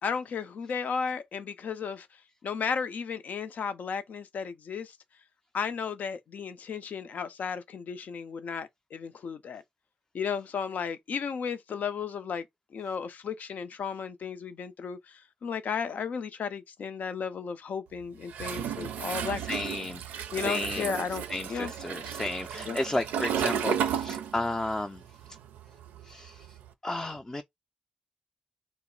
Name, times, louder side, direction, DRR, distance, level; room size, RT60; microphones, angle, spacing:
voice 1, 0.0-2.1 2.4-5.0 5.5-9.6 10.1-12.5 12.7-19.4 20.3-21.2 21.5-21.7 22.7-22.8, left 6 dB, 70° left, 0.5 m, -34 dB
Toilet flush, 18.3-24.8 25.0-26.6, right 8 dB, 90° right, 0.4 m, -33 dB
voice 2, 19.4-20.0 20.4-21.0 21.3-25.2 26.0-26.6 26.8-27.4, left 2 dB, 20° left, 0.4 m, -33 dB
2.1 x 2.0 x 3.8 m
supercardioid pair, 45°, 3 cm